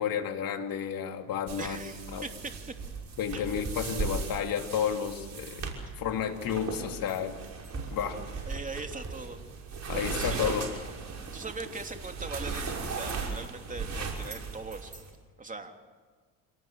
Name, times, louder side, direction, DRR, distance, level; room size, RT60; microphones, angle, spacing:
voice 1, 0.0-2.2 3.2-7.4 7.9-8.2 9.9-10.6, left 8 dB, 55° left, 5 dB, 3.2 m, -32 dB
sound 1, 1.5-15.1, right 4 dB, 40° right, 6.0 m, -37 dB
voice 2, 1.6-2.7 3.3-3.5 5.9-6.0 8.5-9.4 9.9-10.6 11.3-14.9 15.4-15.7, right 3 dB, 20° right, 5 dB, 3.1 m, -40 dB
27.5 x 19.0 x 7.6 m, 1.5 s
hypercardioid pair, 75°, 42 cm